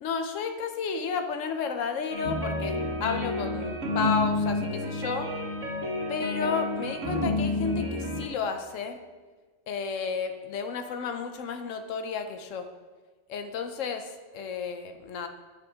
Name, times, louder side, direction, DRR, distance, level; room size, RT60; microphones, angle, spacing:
voice 1, 0.0-5.3 6.1-9.0 9.7-12.7 13.3-15.3, left 5 dB, 80° left, 7 dB, 1.0 m, -32 dB
sound 1, 2.1-8.2, left 2 dB, 85° right, 1.8 m, -30 dB
8.6 x 6.1 x 5.0 m, 1.4 s
omnidirectional pair, 1.3 m